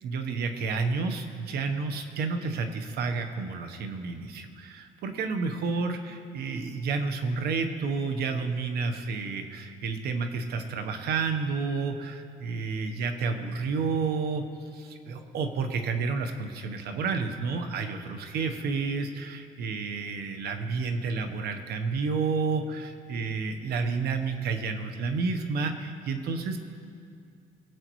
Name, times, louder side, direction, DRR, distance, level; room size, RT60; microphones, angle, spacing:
voice 1, 0.0-14.4 14.7-26.6, right 4 dB, 70° right, 7 dB, 1.1 m, -30 dB
23.0 x 8.0 x 3.1 m, 2.3 s
cardioid pair, 110°, 17 cm